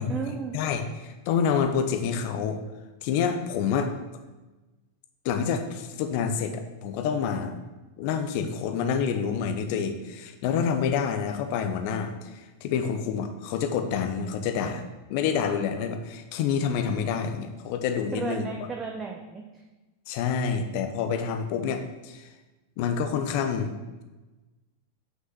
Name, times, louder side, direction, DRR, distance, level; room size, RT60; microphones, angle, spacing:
voice 1, 0.0-0.6 18.1-19.6 20.4-20.5, right 5 dB, 20° right, 1 dB, 0.7 m, -34 dB
voice 2, 0.5-2.6 3.0-3.9 5.2-7.6 8.0-14.8 15.1-18.5 20.1-22.3 22.8-23.7, left 7 dB, 45° left, 6 dB, 0.8 m, -28 dB
5.9 x 5.7 x 6.0 m, 1.1 s
figure-of-eight pair, 90°, 0 cm